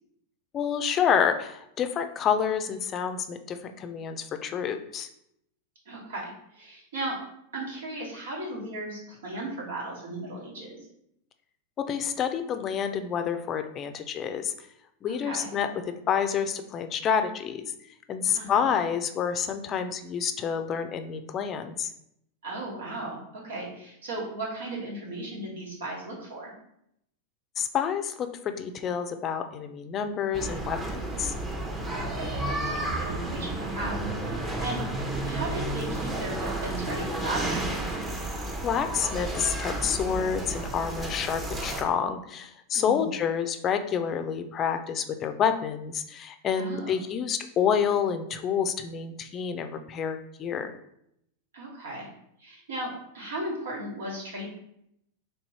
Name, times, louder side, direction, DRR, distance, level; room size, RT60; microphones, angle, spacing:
voice 1, 0.5-5.1 11.8-14.5 15.0-15.7 16.1-17.6 18.1-21.9 27.6-31.3 38.6-50.7, left 7 dB, 35° left, 8 dB, 0.4 m, -28 dB
voice 2, 5.8-7.2 7.5-10.8 15.1-15.5 18.3-18.7 22.4-26.5 31.9-34.8 35.2-37.6 42.7-43.1 46.6-47.0 51.5-52.1 52.4-54.5, right 1 dB, 85° right, -3 dB, 1.6 m, -36 dB
sound 1, 30.3-41.8, right 1 dB, 15° right, 0.7 m, -32 dB
3.2 x 3.0 x 4.1 m, 0.76 s
hypercardioid pair, 115°, 0 cm